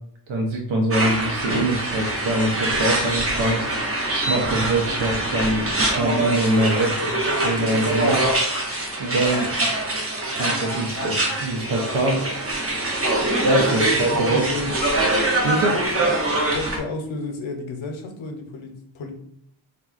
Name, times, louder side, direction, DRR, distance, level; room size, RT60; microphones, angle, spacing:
voice 1, 0.3-3.6 4.1-8.3 9.0-9.5 10.3-12.2 13.4-14.4 15.4-15.8, right 1 dB, 90° right, 0 dB, 0.6 m, -23 dB
sound 1, 0.9-16.8, right 2 dB, 30° right, 0.7 m, -24 dB
voice 2, 13.6-14.0 14.3-14.8 15.7-19.1, left 3 dB, 85° left, 4 dB, 0.6 m, -32 dB
3.6 x 2.1 x 2.4 m, 0.68 s
wide cardioid pair, 70°, 46 cm